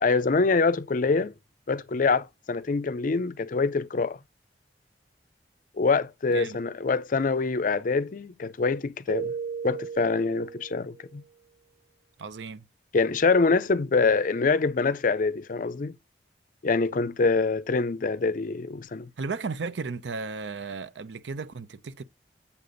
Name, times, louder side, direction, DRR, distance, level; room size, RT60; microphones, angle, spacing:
voice 1, 0.0-1.3 1.7-4.2 5.8-9.3 9.6-11.2 12.9-16.0 16.6-19.1, left 4 dB, 50° left, 0.5 m, -25 dB
Keyboard (musical), 9.1-11.1, right 6 dB, 20° right, 0.8 m, -35 dB
voice 2, 12.2-12.7 19.2-22.0, right 4 dB, 85° right, 0.6 m, -34 dB
7.3 x 6.8 x 3.9 m
head